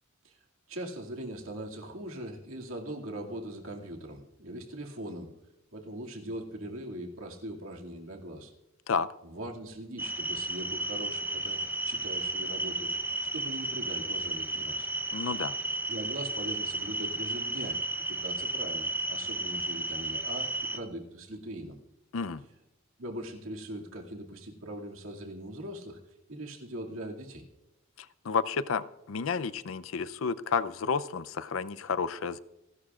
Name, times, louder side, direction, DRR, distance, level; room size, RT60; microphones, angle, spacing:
voice 1, 0.7-5.3 5.7-8.5 9.2-13.0 13.3-14.9 15.9-17.8 18.1-21.8 23.0-26.0 26.3-27.4, right 1 dB, 75° right, 0 dB, 2.3 m, -41 dB
sound 1, 10.0-20.8, right 1 dB, 10° right, 0.7 m, -33 dB
voice 2, 15.1-15.6 22.1-22.4 28.0-32.4, left 5 dB, 70° left, 15 dB, 0.5 m, -31 dB
28.5 x 11.5 x 2.4 m, 0.95 s
head